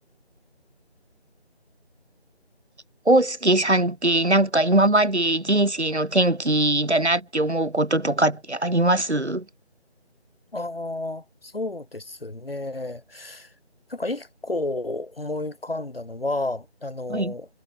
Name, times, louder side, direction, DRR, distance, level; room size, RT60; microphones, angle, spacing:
voice 1, 3.0-9.4 17.1-17.3, right 1 dB, 80° right, 3.1 m, -21 dB
voice 2, 10.5-13.5 13.9-17.5, left 2 dB, 60° left, 5.0 m, -31 dB
figure-of-eight pair, 165°, 33 cm